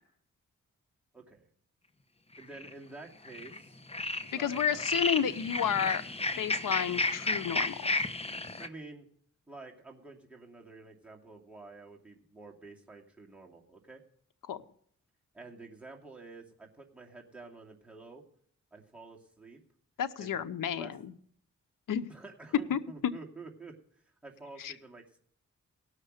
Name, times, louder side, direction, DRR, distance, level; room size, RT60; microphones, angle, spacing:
voice 1, 1.1-1.5 2.4-3.8 4.3-4.9 5.8-5.9 8.6-9.1 9.5-14.0 15.3-18.2 18.7-19.6 20.2-20.9 22.1-25.2, right 3 dB, 5° right, -1 dB, 2.6 m, -49 dB
sound 1, 2.4-2.7 3.3-3.6 3.9-8.7, left 2 dB, 20° left, 1.0 m, -33 dB
voice 2, 4.3-6.0 6.4-7.9 14.5-14.6 20.0-20.9 21.9-22.1 22.7-22.8 24.6-24.7, left 8 dB, 90° left, 10 dB, 0.8 m, -31 dB
17.5 x 6.6 x 6.4 m, 0.63 s
cardioid pair, 70°, 31 cm